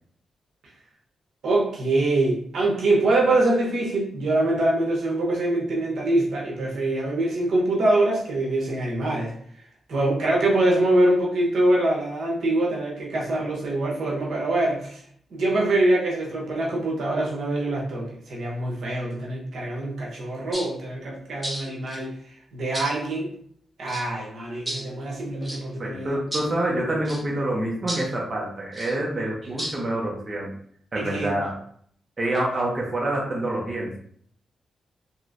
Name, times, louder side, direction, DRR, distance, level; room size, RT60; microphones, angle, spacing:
voice 1, 1.4-9.3 9.9-15.0 15.3-22.1 22.5-23.3 23.8-26.2 29.4-29.6 30.9-31.3, right 2 dB, 75° right, -3 dB, 0.9 m, -24 dB
sound 1, 20.5-20.7 21.4-22.0 22.7-22.9 23.9-24.1 24.7-24.8 25.4-25.6 26.3-26.5 27.0-27.2 27.9-28.1 28.7-28.9 29.6-29.8, right 1 dB, 5° right, 1.1 m, -32 dB
voice 2, 25.8-30.5 30.9-31.6 32.2-34.0, right 1 dB, 30° right, -3 dB, 0.7 m, -27 dB
3.0 x 2.9 x 2.5 m, 0.62 s
wide cardioid pair, 125°, 0 cm